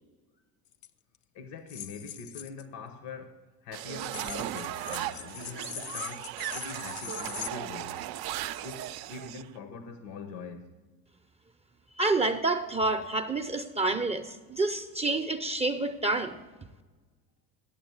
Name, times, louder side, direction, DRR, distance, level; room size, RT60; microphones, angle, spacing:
sound 1, 0.7-0.9 1.7-2.6 4.0-7.5, left 10 dB, 45° left, 0.5 m, -41 dB
voice 1, 1.3-8.0 8.6-10.7, left 4 dB, 65° left, 1.1 m, -43 dB
sound 2, 3.7-9.5, right 14 dB, 55° right, 0.5 m, -37 dB
voice 2, 12.0-16.4, right 2 dB, 15° right, 0.6 m, -28 dB
8.7 x 8.0 x 8.0 m
supercardioid pair, 85°, 43 cm